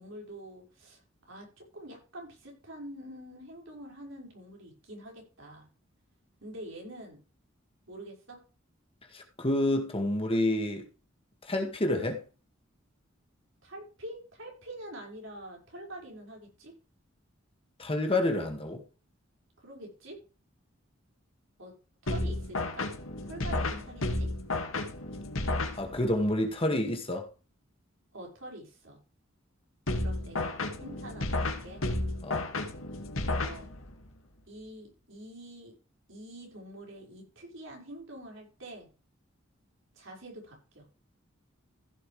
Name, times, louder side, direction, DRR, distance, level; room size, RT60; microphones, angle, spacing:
voice 1, 0.0-1.5 1.7-5.7 6.4-7.2 7.9-8.4 13.6-16.7 19.6-20.2 21.6-21.7 22.0-22.9 23.2-24.3 28.1-29.0 30.0-31.8 33.4-33.7 34.5-35.7 36.1-38.9 39.9-40.9, right 1 dB, 70° right, 5.5 m, -46 dB
voice 2, 9.1-10.9 11.5-12.2 17.8-18.8 25.8-27.3 32.2-32.4, left 1 dB, 30° left, 2.0 m, -28 dB
sound 1, 22.1-26.3 29.9-34.1, left 2 dB, 85° left, 2.1 m, -32 dB
15.5 x 7.7 x 3.3 m
head